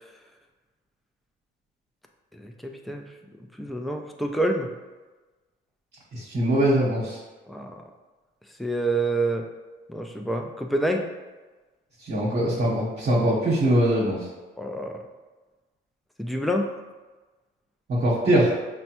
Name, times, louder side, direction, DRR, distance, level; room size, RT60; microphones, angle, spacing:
voice 1, 2.4-3.1 3.6-4.7 7.5-7.8 8.6-9.5 9.9-11.1 14.6-15.0 16.2-16.7, right 1 dB, ahead, 2 dB, 0.4 m, -27 dB
voice 2, 6.1-7.2 12.0-14.2 17.9-18.5, right 1 dB, 55° right, -7 dB, 1.0 m, -22 dB
5.1 x 2.2 x 2.9 m, 1.2 s
cardioid pair, 90°, 20 cm